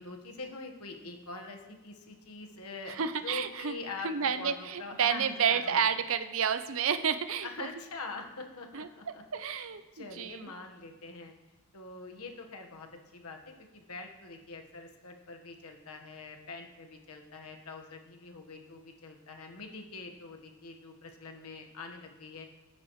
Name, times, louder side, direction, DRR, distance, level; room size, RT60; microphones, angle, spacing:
voice 1, 0.0-5.9 7.4-9.2 9.9-11.3 11.7-22.5, left 3 dB, 80° left, 3 dB, 1.4 m, -44 dB
voice 2, 2.9-3.7 4.0-7.5 8.7-8.9 9.3-10.5, right 7 dB, 65° right, 11 dB, 0.6 m, -30 dB
15.5 x 8.9 x 3.1 m, 1.1 s
head